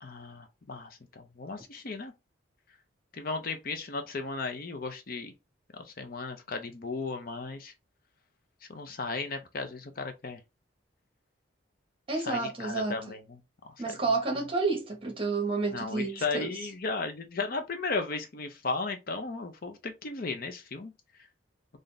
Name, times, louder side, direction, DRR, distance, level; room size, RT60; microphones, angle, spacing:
voice 1, 0.0-2.1 3.1-5.3 5.7-7.7 8.7-10.4 12.2-13.4 13.6-13.7 15.7-20.9, left 3 dB, 50° left, 0.6 m, -35 dB
voice 2, 12.1-13.0 13.8-16.5, right 3 dB, 30° right, 1.2 m, -30 dB
3.9 x 2.6 x 3.3 m
head